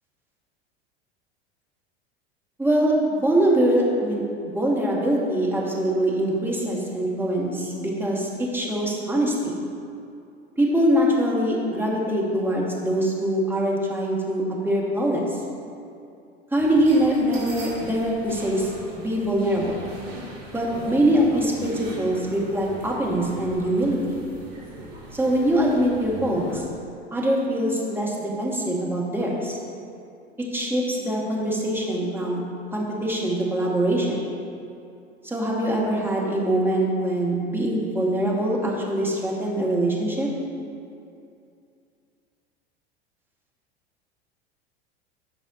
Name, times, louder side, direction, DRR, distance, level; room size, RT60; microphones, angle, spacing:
voice 1, 2.6-9.5 10.6-15.3 16.5-19.8 20.5-24.2 25.1-26.6 27.1-29.6 30.5-32.4 32.7-34.2 35.2-40.3, right 1 dB, 5° right, -3 dB, 1.6 m, -23 dB
sound 1, 16.6-26.6, right 1 dB, 70° right, 1.8 m, -39 dB
13.0 x 5.3 x 3.1 m, 2.5 s
figure-of-eight pair, 80°, 32 cm